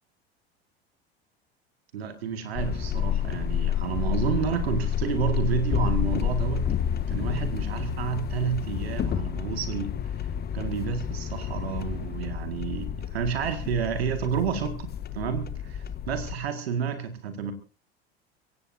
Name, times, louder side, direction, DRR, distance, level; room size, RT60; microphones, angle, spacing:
voice 1, 1.9-6.7 7.1-9.9 10.2-10.3 10.5-14.9 15.1-17.5, right 7 dB, 70° right, 8 dB, 2.0 m, -30 dB
sound 1, 2.6-16.4, left 9 dB, 30° left, 1.4 m, -30 dB
24.5 x 16.5 x 2.7 m, 0.32 s
figure-of-eight pair, 70°, 32 cm